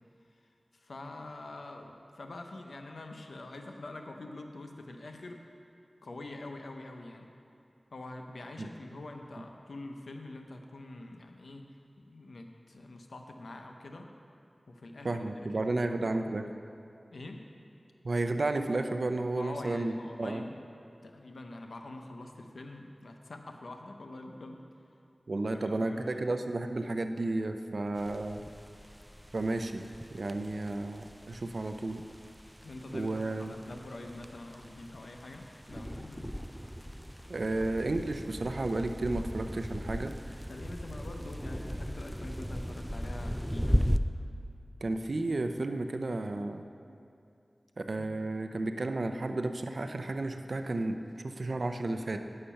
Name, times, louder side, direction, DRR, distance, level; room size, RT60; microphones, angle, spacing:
voice 1, 0.7-5.4 6.0-7.3 7.9-11.7 12.0-14.1 14.7-15.7 16.0-16.2 17.1-17.5 19.4-20.6 21.0-24.9 25.4-26.3 32.6-33.1 33.4-36.3 40.5-43.9 48.0-48.1, left 2 dB, 90° left, 4 dB, 0.7 m, -45 dB
voice 2, 15.0-16.4 18.0-19.9 20.2-20.4 25.3-28.4 29.3-32.0 32.9-33.5 37.3-40.1 44.8-46.6 47.9-51.0 51.2-52.2, right 2 dB, 70° right, 7 dB, 0.5 m, -32 dB
sound 1, 28.0-44.0, equal, 5° right, 0.3 m, -37 dB
9.9 x 6.6 x 5.7 m, 2.6 s
cardioid pair, 40°, 0 cm